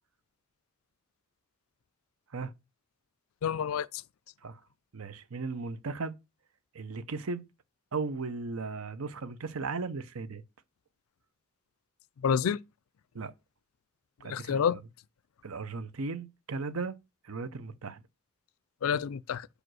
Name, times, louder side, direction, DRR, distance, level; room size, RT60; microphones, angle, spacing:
voice 1, 3.4-4.0 12.2-12.6 14.2-14.8 18.8-19.5, left 7 dB, 80° left, 0.4 m, -28 dB
voice 2, 4.9-6.2 6.7-7.4 7.9-10.4 13.1-13.3 14.2-14.8 15.4-16.9 17.2-18.0, right 4 dB, 85° right, 0.7 m, -36 dB
5.1 x 5.0 x 6.2 m
head